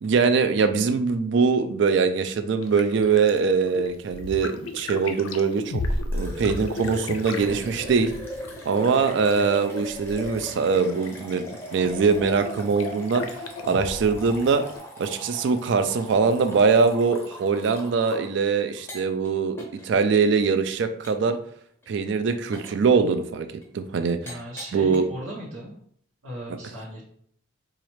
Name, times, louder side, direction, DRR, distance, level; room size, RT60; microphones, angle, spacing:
voice 1, 0.0-5.8 6.1-8.1 8.6-11.4 11.7-13.3 13.6-14.6 15.0-21.4 21.9-23.5 23.7-24.4 24.7-25.0, right 5 dB, 55° right, 8 dB, 0.3 m, -22 dB
sound 1, 2.6-14.8, left 2 dB, 80° left, 0.4 m, -35 dB
sound 2, 6.1-18.3 18.8-19.3 19.6-19.9 20.4-20.5 21.0-21.3 21.8-22.1 22.5-22.8 23.6-23.7 24.3-25.0, left 1 dB, 10° left, 0.7 m, -40 dB
sound 3, 7.3-9.3, right 1 dB, 35° right, 0.7 m, -45 dB
voice 2, 24.2-25.7 26.2-27.0, right 1 dB, 85° right, -6 dB, 0.9 m, -37 dB
4.0 x 2.4 x 3.1 m, 0.63 s
head